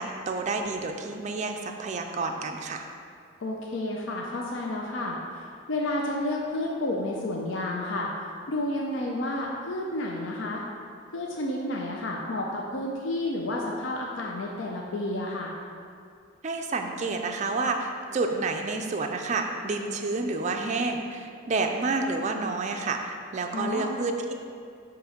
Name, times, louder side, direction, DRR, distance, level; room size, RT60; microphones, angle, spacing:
voice 1, 0.0-2.8 16.4-24.3, right 3 dB, 35° right, 3 dB, 0.4 m, -29 dB
voice 2, 3.4-5.2 5.7-8.1 8.5-10.6 11.1-15.5 23.5-24.0, left 1 dB, 65° left, -1 dB, 0.5 m, -30 dB
7.4 x 3.0 x 5.0 m, 2.3 s
head